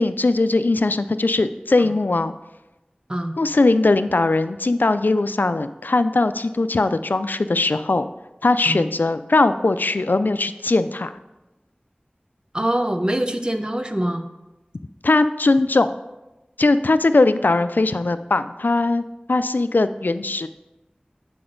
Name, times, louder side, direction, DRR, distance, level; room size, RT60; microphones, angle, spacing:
voice 1, 0.0-2.3 3.4-8.1 8.4-11.1 15.0-15.9 16.6-19.0 19.3-20.5, left 2 dB, 80° left, 12 dB, 0.3 m, -20 dB
voice 2, 12.5-14.2, right 1 dB, 30° right, 6 dB, 0.7 m, -24 dB
7.6 x 6.1 x 3.8 m, 1.0 s
wide cardioid pair, 40°, 3 cm